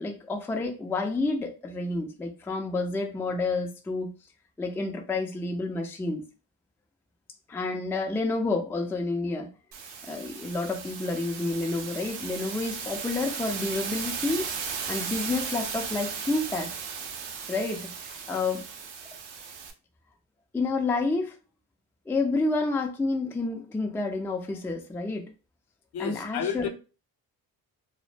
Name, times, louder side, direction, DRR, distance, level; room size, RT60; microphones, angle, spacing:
voice 1, 0.0-4.1 4.6-6.2 7.5-9.5 10.0-14.5 14.9-16.7 17.5-17.9 18.3-18.6 20.5-21.4 22.1-25.3 26.0-26.7, left 3 dB, 5° left, 0.3 m, -29 dB
sound 1, 9.7-19.7, right 6 dB, 65° right, 0.7 m, -36 dB
voice 2, 25.9-26.7, left 8 dB, 55° left, 0.6 m, -31 dB
2.1 x 2.0 x 3.1 m
supercardioid pair, 55°, 48 cm